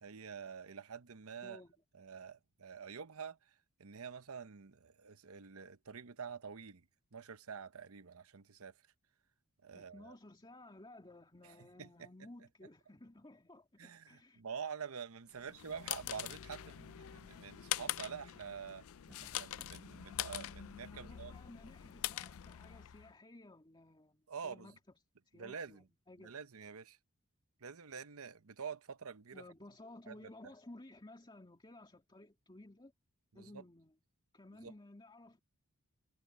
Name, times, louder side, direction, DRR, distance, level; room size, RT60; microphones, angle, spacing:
voice 1, 0.0-1.6 1.9-3.5 3.8-6.8 7.1-8.7 9.6-10.1 11.4-12.1 13.8-18.9 19.2-21.4 24.3-24.7 25.3-25.8 26.2-27.0 27.6-29.4 30.1-30.2 33.3-33.6 34.6-34.7, right 6 dB, 70° right, 0.9 m, -47 dB
voice 2, 1.4-1.7 9.7-14.4 15.4-15.6 20.9-24.7 25.3-26.3 29.3-32.9 33.3-33.9 34.3-35.4, left 1 dB, 20° left, 2.6 m, -56 dB
sound 1, 15.4-23.1, left 13 dB, 70° left, 0.4 m, -43 dB
sound 2, 19.1-20.2, equal, 5° right, 0.9 m, -61 dB
head